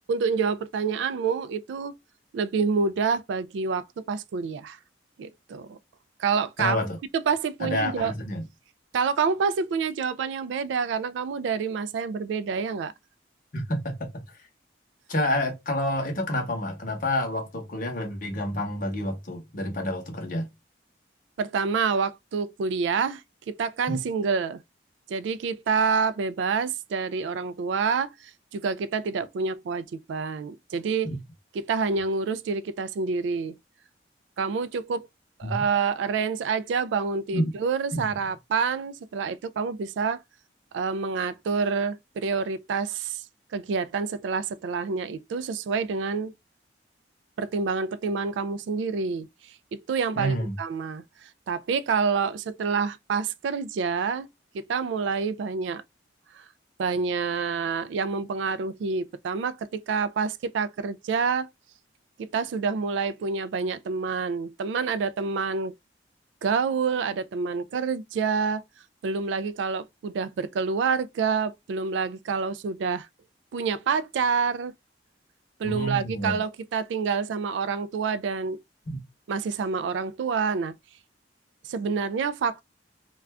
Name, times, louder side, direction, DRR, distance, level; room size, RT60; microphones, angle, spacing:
voice 1, 0.1-1.9 2.3-4.8 5.2-5.8 6.2-6.8 7.1-8.1 8.9-12.9 21.4-23.2 23.5-24.6 25.1-31.1 31.5-33.5 34.4-35.1 35.4-40.2 40.7-43.2 43.5-46.3 47.4-49.3 49.9-51.0 51.5-54.3 54.5-55.8 56.3-56.4 56.8-61.5 62.2-65.7 66.4-68.6 69.0-73.1 73.5-74.7 75.6-78.6 79.3-80.7 81.6-82.6, right 5 dB, 75° right, 0.3 m, -27 dB
voice 2, 6.6-7.0 7.6-8.4 13.5-14.2 15.1-20.5 23.9-24.0 31.0-31.2 35.4-35.6 37.3-37.5 37.9-38.1 50.2-50.5 75.6-76.4 78.9-79.0, left 1 dB, 45° left, 0.8 m, -29 dB
2.4 x 2.2 x 3.3 m
head